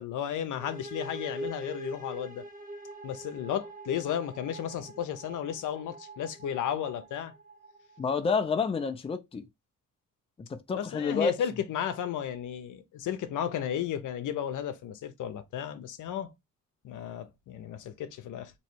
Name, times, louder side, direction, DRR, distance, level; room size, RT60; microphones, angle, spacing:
voice 1, 0.0-2.4 3.0-7.3 10.7-16.3 16.8-18.5, left 9 dB, 75° left, 0.8 m, -34 dB
sound 1, 0.6-8.3, right 2 dB, 25° right, 1.2 m, -44 dB
voice 2, 8.0-9.4 10.5-11.4, left 5 dB, 20° left, 0.5 m, -29 dB
3.1 x 3.0 x 4.5 m
cardioid pair, 125°, 31 cm